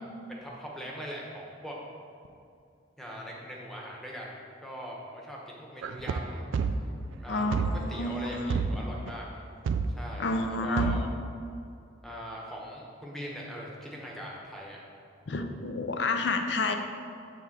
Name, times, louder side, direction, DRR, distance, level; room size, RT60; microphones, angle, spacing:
voice 1, 0.3-1.8 3.0-6.4 7.1-9.3 9.9-11.0 12.0-14.8, equal, ahead, -3 dB, 0.9 m, -41 dB
sound 1, 5.8-7.1 7.5-7.9 8.5-9.1 9.7-10.1 10.4-10.5 10.8-11.2, right 5 dB, 85° right, 0.3 m, -29 dB
voice 2, 7.3-8.9 10.2-11.1 15.3-16.7, left 2 dB, 65° left, 6 dB, 0.5 m, -30 dB
7.2 x 3.4 x 5.9 m, 2.5 s
head